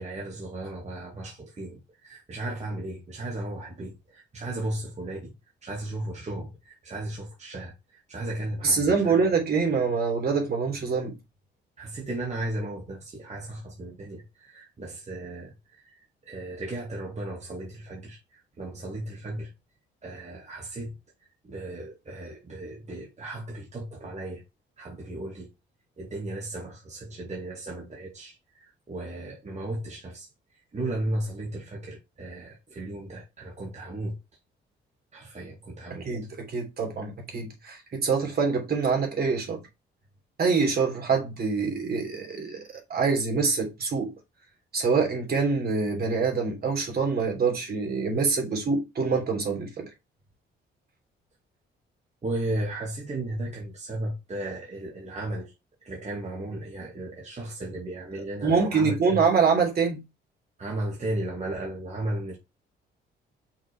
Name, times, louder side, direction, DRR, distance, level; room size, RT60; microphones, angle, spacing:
voice 1, 0.0-5.3 5.6-9.1 11.8-19.5 20.0-20.9 21.2-24.4 24.8-25.5 26.0-30.3 30.5-34.2 35.1-36.1 52.2-55.5 55.8-59.2 60.6-62.4, right 1 dB, 35° right, 2.3 m, -35 dB
voice 2, 8.6-11.2 36.0-39.6 40.4-42.6 42.9-44.1 44.7-49.9 58.4-60.0, right 5 dB, 50° right, 3.2 m, -25 dB
6.0 x 4.0 x 4.7 m
cardioid pair, 90°, 20 cm